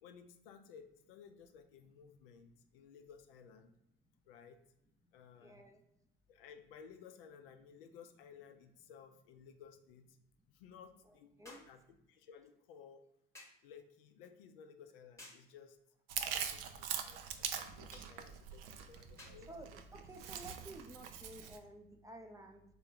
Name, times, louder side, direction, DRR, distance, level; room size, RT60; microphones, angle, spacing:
voice 1, 0.0-3.8 4.3-4.6 5.1-5.6 6.3-10.2 10.5-11.8 12.1-13.0 13.6-15.8 16.3-19.5, left 7 dB, 65° left, 7 dB, 0.5 m, -57 dB
voice 2, 5.4-5.8 11.1-11.6 16.2-16.8 17.3-18.2 18.4-18.7 19.5-22.6, right 1 dB, 10° right, 4 dB, 0.5 m, -54 dB
sound 1, 7.7-7.8 11.4-11.8 13.3-13.7 15.2-15.5 17.9-18.2 19.2-19.5 20.5-20.6, left 2 dB, 10° left, 1.0 m, -56 dB
Chewing mastication, 16.1-21.6, right 8 dB, 65° right, 0.5 m, -43 dB
3.6 x 2.5 x 3.3 m, 0.81 s
figure-of-eight pair, 55°, 30 cm